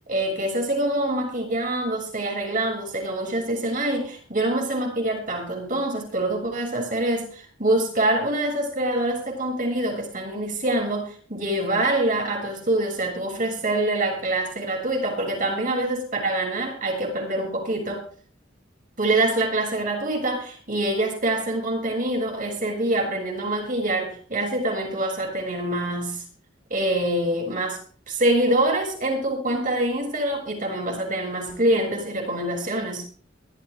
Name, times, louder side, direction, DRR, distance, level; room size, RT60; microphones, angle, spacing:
voice 1, 0.1-18.1 19.0-26.2 26.7-27.8 28.1-33.1, right 1 dB, 45° right, 7.1 m, -25 dB
24.0 x 15.0 x 2.6 m
head